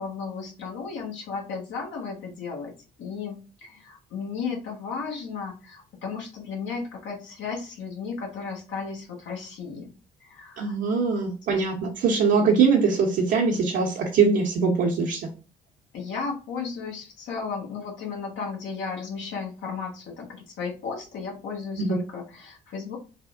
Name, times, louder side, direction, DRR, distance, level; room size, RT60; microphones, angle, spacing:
voice 1, 0.0-2.7 3.0-9.9 10.2-10.8 11.5-11.6 15.9-23.0, left 5 dB, 65° left, 0 dB, 1.1 m, -34 dB
voice 2, 10.6-15.2 21.8-22.0, right 5 dB, 60° right, 0 dB, 0.7 m, -22 dB
3.4 x 2.0 x 2.4 m, 0.33 s
hypercardioid pair, 50°, 20 cm